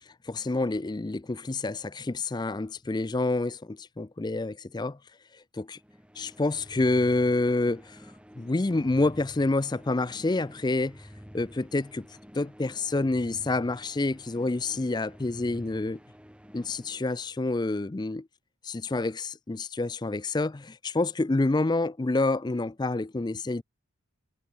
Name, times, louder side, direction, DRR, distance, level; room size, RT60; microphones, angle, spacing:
voice 1, 0.3-5.0 5.5-5.8 6.2-8.0 8.4-11.1 11.3-12.1 12.3-16.0 16.5-18.3 18.6-23.6, left 2 dB, 20° left, 0.4 m, -28 dB
sound 1, 5.7-17.6, equal, 5° right, 5.3 m, -50 dB
head